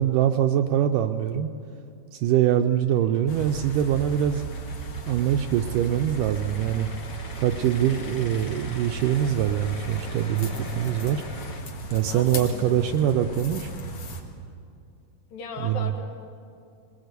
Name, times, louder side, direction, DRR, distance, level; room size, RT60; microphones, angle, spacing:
voice 1, 0.0-1.5 2.1-4.4 5.1-6.9 7.4-11.2 11.9-13.7 15.6-15.9, right 10 dB, 80° right, 7 dB, 2.0 m, -23 dB
sound 1, 2.9-11.6, left 3 dB, 85° left, 0.7 m, -43 dB
sound 2, 3.3-14.2, right 3 dB, 50° left, 2.2 m, -36 dB
voice 2, 12.1-12.8 13.5-13.6 15.3-16.1, left 4 dB, 70° left, 3 dB, 3.7 m, -37 dB
21.5 x 20.0 x 8.2 m, 2.4 s
omnidirectional pair, 4.3 m